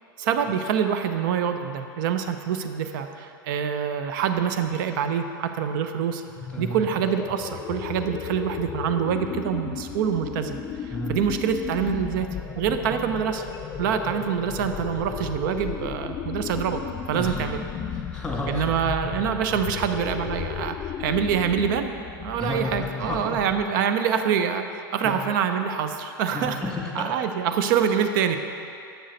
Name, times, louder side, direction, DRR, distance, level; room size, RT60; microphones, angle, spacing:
voice 1, 0.2-6.2 6.6-12.3 12.6-13.4 13.8-16.8 17.1-17.6 18.5-21.9 22.2-26.6 26.9-28.4, right 8 dB, 65° right, 8 dB, 0.6 m, -25 dB
sound 1, 6.3-23.8, left 8 dB, 30° left, 0.4 m, -34 dB
voice 2, 6.5-6.8 10.9-11.2 13.7-13.8 17.1-17.4 17.9-18.7 22.4-23.4 25.0-25.2 26.3-27.1, left 2 dB, 10° left, -1 dB, 1.5 m, -31 dB
8.0 x 6.3 x 4.0 m, 2.5 s
hypercardioid pair, 100°, 12 cm